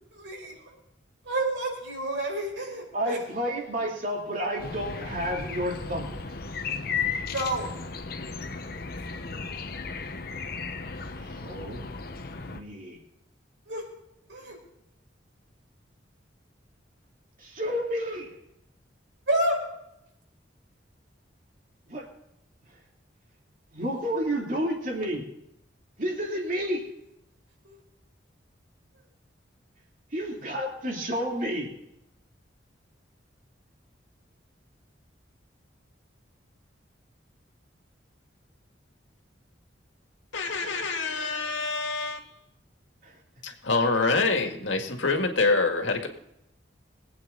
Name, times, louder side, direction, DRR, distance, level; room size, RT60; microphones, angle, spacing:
voice 1, 0.2-0.5 1.2-3.2 7.3-7.7 13.7-13.8 14.3-14.6 19.3-19.7 27.6-27.8, right 1 dB, 75° right, 0 dB, 4.7 m, -29 dB
voice 2, 2.9-6.3 11.2-11.8 12.5-13.0 17.4-18.4 21.9-22.1 22.7-22.8 23.7-25.3 26.0-26.9 30.1-31.7 43.0-43.2, equal, 45° right, 0 dB, 2.9 m, -31 dB
sound 1, 4.6-12.6, left 5 dB, 50° left, 1.0 m, -35 dB
voice 3, 40.3-42.3 43.4-46.1, left 3 dB, 85° left, 4 dB, 2.0 m, -26 dB
22.5 x 8.8 x 3.9 m, 0.82 s
head